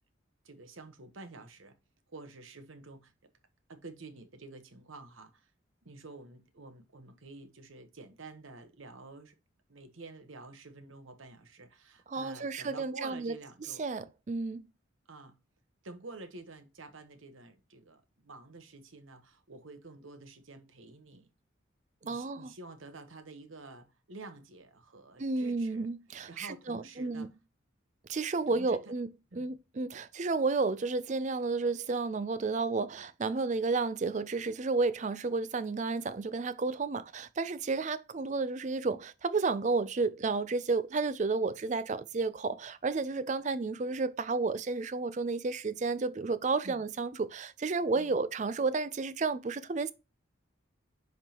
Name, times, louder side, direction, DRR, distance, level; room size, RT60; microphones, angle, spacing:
voice 1, 0.4-1.7 2.1-3.1 3.7-5.5 5.8-9.3 9.7-13.8 15.1-15.3 15.8-21.3 22.0-25.9 26.2-27.3 28.5-28.9 29.3-29.5 46.6-46.8 47.9-48.2, right 3 dB, 80° right, 1.1 m, -49 dB
voice 2, 12.1-13.3 13.8-14.6 22.1-22.5 25.2-27.3 28.1-29.1 29.4-49.9, right 3 dB, 35° right, 0.4 m, -32 dB
10.5 x 3.6 x 2.9 m
head